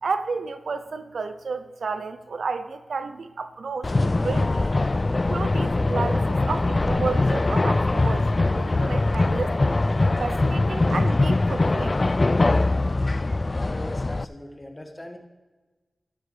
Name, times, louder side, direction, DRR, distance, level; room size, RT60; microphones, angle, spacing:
voice 1, 0.0-4.7 5.3-9.7 10.2-12.0, right 4 dB, 80° right, 10 dB, 0.6 m, -31 dB
sound 1, 3.8-14.2, left 2 dB, 40° left, 0.3 m, -22 dB
voice 2, 13.4-15.2, left 1 dB, 25° left, 3 dB, 2.0 m, -39 dB
12.5 x 11.5 x 3.4 m, 1.2 s
cardioid pair, 50°, 0 cm